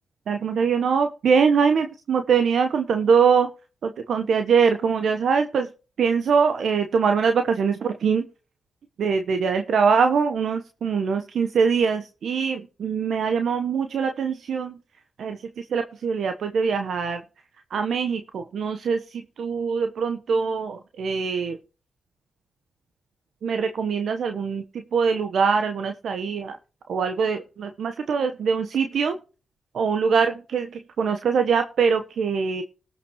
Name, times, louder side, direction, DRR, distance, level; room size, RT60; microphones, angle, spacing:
voice 1, 0.3-3.5 3.8-5.7 6.0-8.3 9.0-14.8 15.2-17.2 17.7-21.6 23.4-26.6 26.9-29.2 29.7-32.6, right 6 dB, 70° right, 7 dB, 1.1 m, -23 dB
18.5 x 7.2 x 3.1 m, 0.35 s
supercardioid pair, 45°, 0 cm